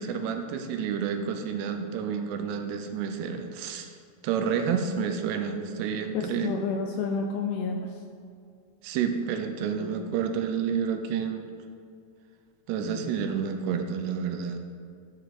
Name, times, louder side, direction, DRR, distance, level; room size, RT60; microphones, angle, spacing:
voice 1, 0.0-3.9 4.2-6.5 8.8-11.5 12.7-14.6, right 7 dB, 80° right, 6 dB, 2.7 m, -29 dB
voice 2, 6.1-7.9 9.8-10.2 12.8-13.2, left 5 dB, 80° left, 3 dB, 2.3 m, -31 dB
11.0 x 6.6 x 4.2 m, 2.3 s
omnidirectional pair, 4.9 m